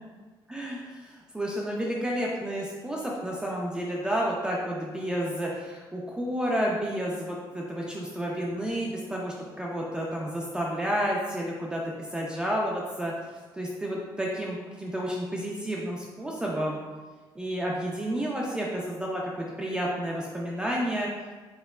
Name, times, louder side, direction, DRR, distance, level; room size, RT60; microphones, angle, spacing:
voice 1, 0.5-11.8 12.1-13.1 13.5-16.8 17.4-21.1, equal, 10° right, -3 dB, 0.3 m, -31 dB
4.3 x 2.8 x 2.3 m, 1.3 s
cardioid pair, 155°, 9 cm